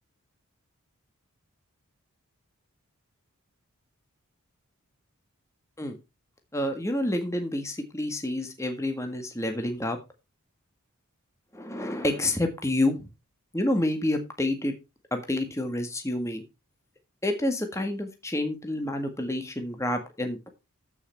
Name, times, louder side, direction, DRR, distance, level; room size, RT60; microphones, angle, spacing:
voice 1, 6.5-10.0 11.5-13.1 13.5-14.7 15.1-16.4 17.2-20.5, left 1 dB, 15° left, 5 dB, 1.7 m, -28 dB
14.5 x 5.9 x 4.5 m, 0.26 s
head